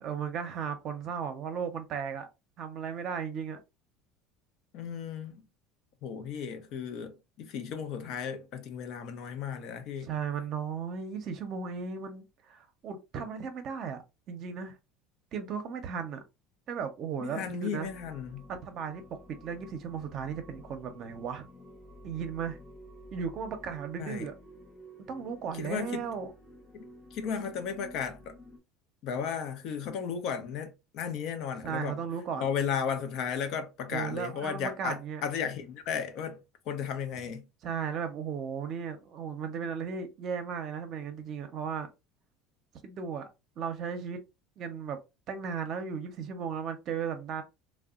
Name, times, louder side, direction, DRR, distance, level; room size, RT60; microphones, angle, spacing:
voice 1, 0.0-2.3 2.6-3.6 10.0-14.0 14.3-14.8 15.3-16.2 16.7-17.9 18.5-19.0 19.3-21.5 22.0-22.6 23.1-24.3 25.1-26.3 31.6-32.5 33.9-35.2 37.6-41.9 42.8-43.3 43.6-44.2 44.6-45.0 45.3-47.4, right 6 dB, 50° right, 0.6 m, -35 dB
voice 2, 4.7-5.4 6.0-10.1 17.2-18.5 24.0-24.3 25.5-26.1 26.7-28.4 29.0-32.0 32.4-37.4, left 7 dB, 60° left, 0.6 m, -35 dB
sound 1, 17.8-28.6, equal, 40° left, 0.9 m, -51 dB
2.7 x 2.1 x 2.4 m
supercardioid pair, 110°, 0 cm